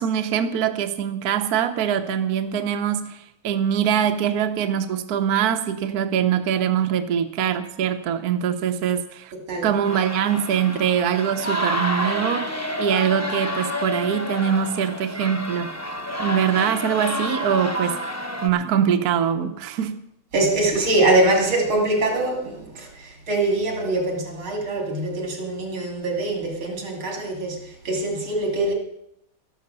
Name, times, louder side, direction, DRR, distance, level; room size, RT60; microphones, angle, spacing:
voice 1, 0.0-9.3 9.6-15.8 16.2-18.0 18.4-20.0, right 8 dB, 55° right, 1.2 m, -23 dB
sound 1, 9.8-18.5, equal, 25° left, 0.3 m, -29 dB
voice 2, 20.3-28.7, right 2 dB, 75° right, 3.6 m, -23 dB
13.0 x 11.5 x 6.8 m
omnidirectional pair, 2.3 m